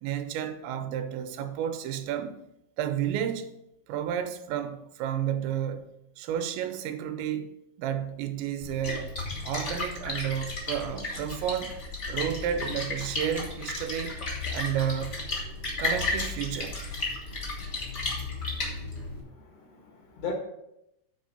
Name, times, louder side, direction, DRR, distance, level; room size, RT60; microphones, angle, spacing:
voice 1, 0.0-2.4 2.8-3.5 3.9-7.5 7.8-9.1 9.4-11.8 12.1-14.2 14.5-15.2 15.8-16.8 19.7-19.8, right 9 dB, 85° right, 3.0 m, -31 dB
Splash splatter, 8.6-19.2, left 3 dB, 40° left, 1.2 m, -33 dB
voice 2, 19.3-20.3, left 5 dB, 80° left, 1.4 m, -38 dB
9.4 x 4.7 x 5.1 m
omnidirectional pair, 5.2 m